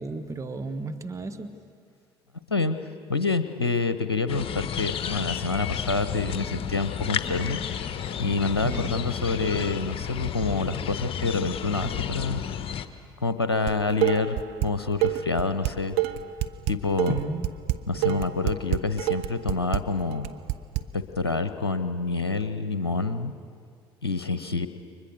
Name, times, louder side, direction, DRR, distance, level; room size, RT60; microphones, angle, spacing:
voice 1, 0.0-1.6 8.6-9.0 17.1-17.5 17.9-18.3, right 3 dB, 25° right, 8 dB, 1.7 m, -34 dB
voice 2, 3.1-7.6 8.2-12.4 13.2-14.4 14.6-16.0 16.7-17.2 17.9-20.3 20.9-23.3 24.0-24.7, left 3 dB, 85° left, 10 dB, 0.8 m, -27 dB
sound 1, 4.3-12.9, left 8 dB, 45° left, 1.3 m, -32 dB
Dishes pots and pans, 13.7-14.7 15.0-20.8, right 15 dB, 60° right, 1.0 m, -26 dB
30.0 x 24.5 x 6.7 m, 2.2 s
figure-of-eight pair, 55°, 13 cm